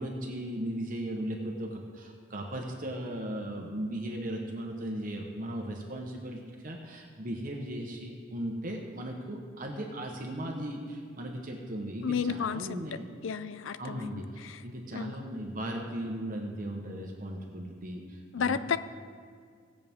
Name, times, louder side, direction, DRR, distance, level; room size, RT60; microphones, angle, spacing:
voice 1, 0.0-13.1 13.8-14.2 14.6-18.6, right 1 dB, 45° right, 1 dB, 1.1 m, -37 dB
voice 2, 12.0-12.7 13.2-14.6 14.9-15.1 18.3-18.8, left 6 dB, 75° left, 13 dB, 0.5 m, -32 dB
18.0 x 7.6 x 3.6 m, 2.1 s
head